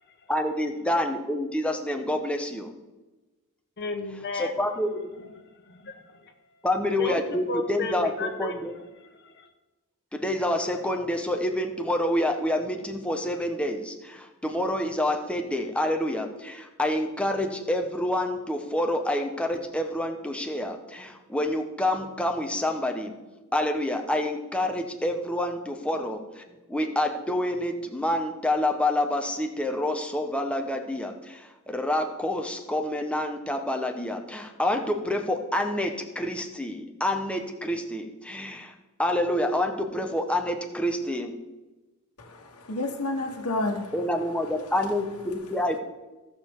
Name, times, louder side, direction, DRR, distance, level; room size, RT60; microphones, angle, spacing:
voice 1, 0.3-2.7 4.3-5.1 6.6-8.7 10.1-23.2 23.5-26.4 26.7-38.7 39.0-41.3 43.9-45.8, left 1 dB, 5° left, 4 dB, 1.0 m, -28 dB
voice 2, 3.8-4.6 5.2-5.3 5.6-6.3 7.0-9.5, left 3 dB, 50° left, 5 dB, 1.1 m, -34 dB
voice 3, 42.2-45.1, left 2 dB, 85° left, 1 dB, 1.3 m, -32 dB
16.5 x 6.7 x 3.6 m, 1.1 s
head